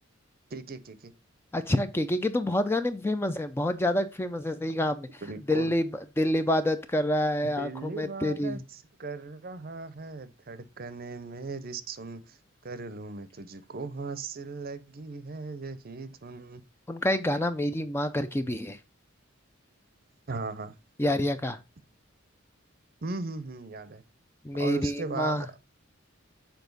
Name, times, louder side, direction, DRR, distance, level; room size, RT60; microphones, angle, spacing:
voice 1, 0.5-1.1 5.2-5.7 7.6-12.4 12.6-16.6 20.3-20.7 23.0-24.0 24.6-25.6, right 3 dB, 45° right, 0.6 m, -38 dB
voice 2, 1.5-5.2 5.5-5.9 6.2-8.6 16.9-18.8 21.0-21.6 24.4-25.5, left 1 dB, 10° left, 0.4 m, -27 dB
7.0 x 4.5 x 3.9 m
head